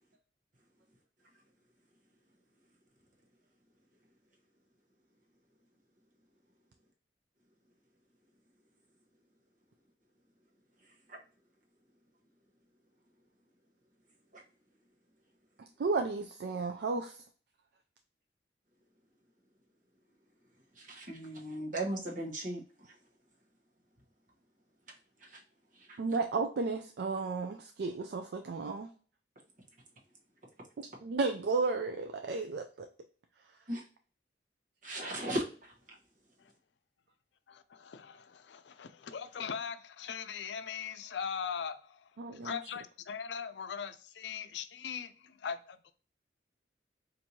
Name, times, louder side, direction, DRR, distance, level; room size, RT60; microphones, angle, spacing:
voice 1, 15.8-17.2 26.0-28.9 31.0-32.9 42.2-42.6, right 4 dB, 65° right, 0.4 m, -33 dB
voice 2, 20.8-22.6 25.3-25.4 25.9-26.0 33.7-33.8 34.8-35.7, right 1 dB, 50° right, 1.1 m, -36 dB
voice 3, 37.5-45.9, left 7 dB, 80° left, 0.4 m, -40 dB
4.4 x 2.6 x 2.7 m
head